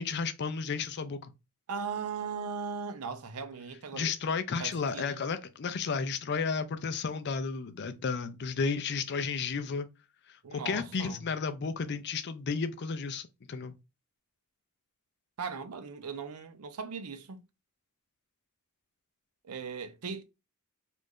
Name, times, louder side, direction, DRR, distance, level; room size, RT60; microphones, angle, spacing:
voice 1, 0.0-1.3 3.9-9.9 10.5-13.8, left 5 dB, 50° left, 0.5 m, -33 dB
voice 2, 1.7-4.1 4.6-5.3 10.4-11.2 15.4-17.4 19.4-20.2, right 5 dB, 90° right, 0.6 m, -38 dB
3.1 x 2.5 x 3.6 m
head